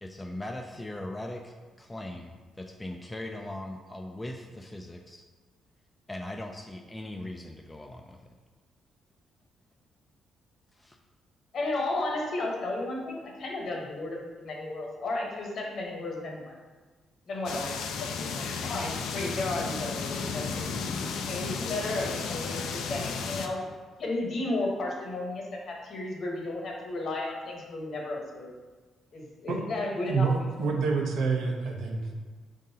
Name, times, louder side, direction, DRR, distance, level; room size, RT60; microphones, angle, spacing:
voice 1, 0.0-5.2 6.1-8.2 10.7-11.0, left 1 dB, 15° left, 3 dB, 0.3 m, -40 dB
voice 2, 11.5-16.4 17.3-20.6 21.3-23.6 24.0-28.5 29.1-30.7, left 2 dB, 60° left, -1 dB, 1.0 m, -33 dB
sound 1, 17.5-23.5, left 5 dB, 80° left, 0.4 m, -33 dB
voice 3, 30.6-32.1, right 5 dB, 80° right, 1 dB, 0.8 m, -27 dB
5.0 x 3.7 x 2.7 m, 1.4 s
cardioid pair, 90°, 0 cm